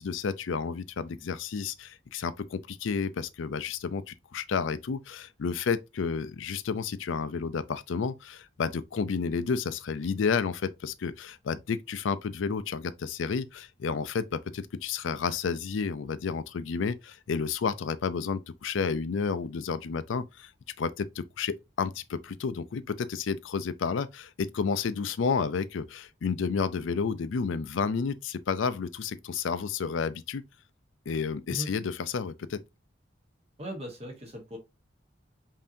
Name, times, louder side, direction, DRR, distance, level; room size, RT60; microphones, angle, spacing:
voice 1, 0.0-20.5 20.8-30.4 31.1-32.6, left 5 dB, 80° left, 0.4 m, -31 dB
voice 2, 33.6-34.6, right 1 dB, 30° right, 0.9 m, -38 dB
5.4 x 2.8 x 2.5 m
head